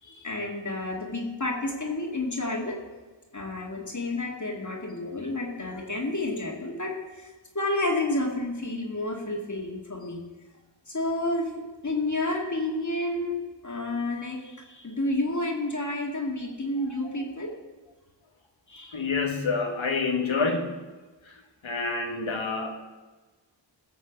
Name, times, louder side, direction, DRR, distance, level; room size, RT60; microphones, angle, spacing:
voice 1, 0.0-2.8 3.3-10.2 10.9-13.4 13.6-17.5 18.7-19.1, left 2 dB, 40° left, 0 dB, 2.3 m, -30 dB
voice 2, 18.9-20.7 21.6-22.7, left 4 dB, 90° left, 2 dB, 1.8 m, -27 dB
16.0 x 6.2 x 7.4 m, 1.3 s
wide cardioid pair, 75°, 45 cm